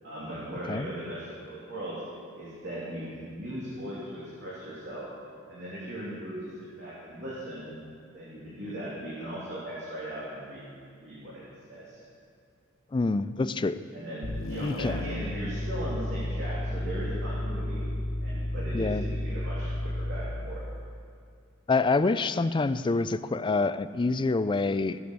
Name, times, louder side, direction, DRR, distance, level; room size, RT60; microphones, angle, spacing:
voice 1, 0.0-2.0 2.4-5.1 5.5-6.4 6.8-7.8 8.1-10.6 11.0-12.0 13.9-17.9 18.2-20.6, right 1 dB, 60° right, -8 dB, 3.2 m, -38 dB
voice 2, 12.9-13.8 14.6-15.0 18.7-19.0 21.7-25.0, left 3 dB, 25° left, 13 dB, 0.4 m, -26 dB
sound 1, 14.2-20.4, left 1 dB, 70° left, 1.0 m, -32 dB
17.0 x 7.9 x 6.8 m, 2.2 s
head